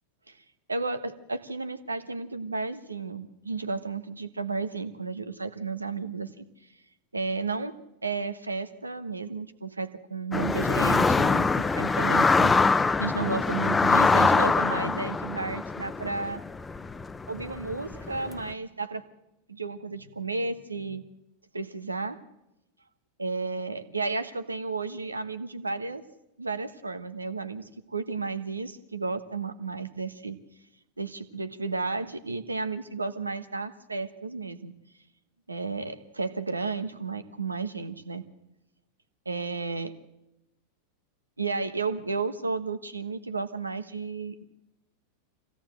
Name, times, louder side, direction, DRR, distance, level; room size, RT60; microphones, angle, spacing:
voice 1, 0.7-6.4 7.1-7.7 8.0-16.4 17.3-19.0 19.5-21.0 21.5-22.2 23.2-26.0 26.4-30.4 31.0-34.7 35.5-38.2 39.2-39.9 41.4-44.4, right 4 dB, 85° right, 11 dB, 1.2 m, -33 dB
sound 1, 10.3-18.4, left 4 dB, 15° left, 0.7 m, -24 dB
24.5 x 16.5 x 7.8 m, 0.92 s
figure-of-eight pair, 90°, 0 cm